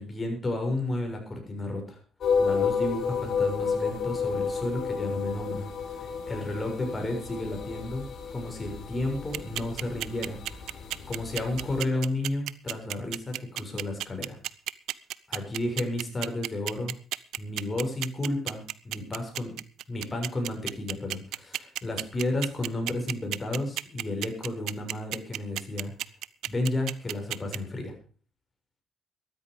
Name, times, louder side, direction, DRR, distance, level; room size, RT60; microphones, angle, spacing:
voice 1, 0.0-2.0 2.4-5.7 5.9-10.4 11.1-14.4 15.3-16.9 17.4-19.5 19.9-25.9 26.5-27.9, left 1 dB, 30° left, 3 dB, 6.9 m, -32 dB
sound 1, 2.2-11.8, left 5 dB, 60° left, 4.4 m, -31 dB
sound 2, 9.3-27.6, right 14 dB, 85° right, 0.6 m, -32 dB
13.5 x 13.5 x 5.1 m, 0.40 s
cardioid pair, 90°, 0 cm